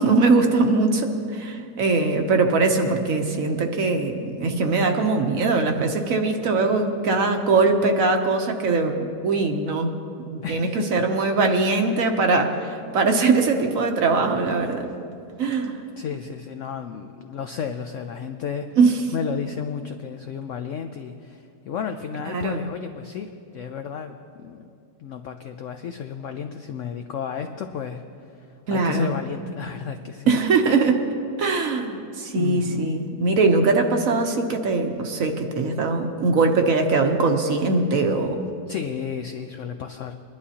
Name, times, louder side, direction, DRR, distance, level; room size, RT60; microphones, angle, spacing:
voice 1, 0.0-9.9 10.3-14.9 15.4-15.8 18.8-19.0 22.3-22.6 28.7-29.1 30.3-31.0 31.4-38.4, right 3 dB, 60° right, 5 dB, 1.1 m, -21 dB
voice 2, 10.4-11.0 16.0-18.7 19.1-24.7 25.0-30.3 32.3-33.0 38.7-40.1, left 7 dB, 75° left, 7 dB, 0.7 m, -33 dB
22.0 x 11.0 x 2.8 m, 2.5 s
omnidirectional pair, 1.8 m